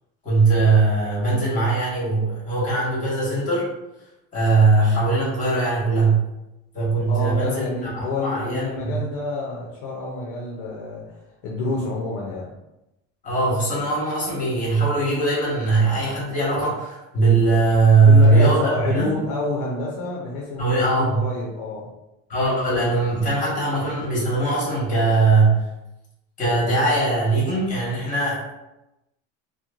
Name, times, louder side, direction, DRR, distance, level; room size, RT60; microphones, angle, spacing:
voice 1, 0.2-3.7 4.3-6.2 6.7-8.9 13.2-19.1 20.6-21.2 22.3-25.6 26.4-28.5, right 3 dB, 25° left, -6 dB, 1.2 m, -20 dB
voice 2, 7.1-12.5 18.0-21.9, left 3 dB, 60° left, -3 dB, 0.6 m, -28 dB
2.9 x 2.1 x 2.4 m, 0.94 s
cardioid pair, 160°, 34 cm